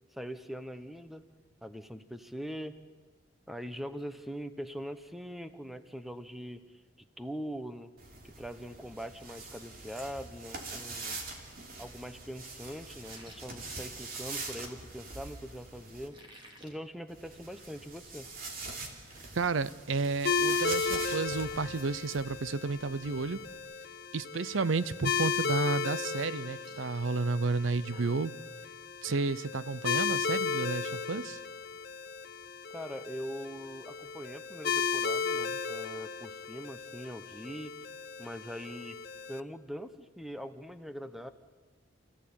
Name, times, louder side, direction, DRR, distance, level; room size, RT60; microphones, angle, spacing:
voice 1, 0.1-1.3 1.6-2.8 3.5-6.6 7.2-7.9 8.2-11.2 11.8-16.2 16.6-18.3 32.7-37.7 38.2-39.0 39.3-41.3, equal, ahead, 1.1 m, -42 dB
sound 1, 8.0-16.1 17.1-23.6, right 3 dB, 50° right, 3.3 m, -44 dB
sound 2, 13.0-14.5 16.0-16.8 17.2-17.4 17.7-17.8 18.3-18.4 18.7-19.5 19.9-20.2 20.5-20.6 22.5-22.6 23.0-23.3 23.6-24.1 24.5-24.6 26.0-28.3, right 1 dB, 25° right, 3.3 m, -57 dB
voice 2, 19.3-23.4 24.1-28.3 29.0-31.4, right 4 dB, 85° right, 0.7 m, -31 dB
sound 3, 20.2-39.4, left 5 dB, 55° left, 1.0 m, -35 dB
29.0 x 16.5 x 8.7 m
head